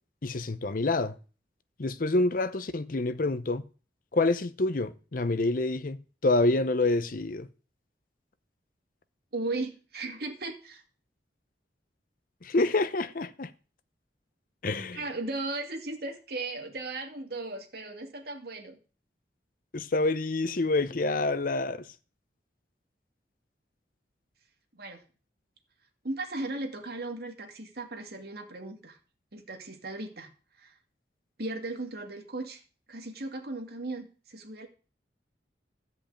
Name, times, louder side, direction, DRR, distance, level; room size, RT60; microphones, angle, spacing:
voice 1, 0.2-1.2 1.8-3.6 4.1-6.0 6.2-7.5 12.4-13.5 14.6-15.0 19.7-21.8, left 2 dB, 50° left, 0.7 m, -27 dB
voice 2, 9.3-10.8 14.9-18.8 24.7-25.0 26.0-29.0 29.3-30.3 30.6-30.7 31.4-32.6 32.9-34.7, right 2 dB, 60° right, 2.1 m, -36 dB
14.0 x 5.3 x 8.7 m
head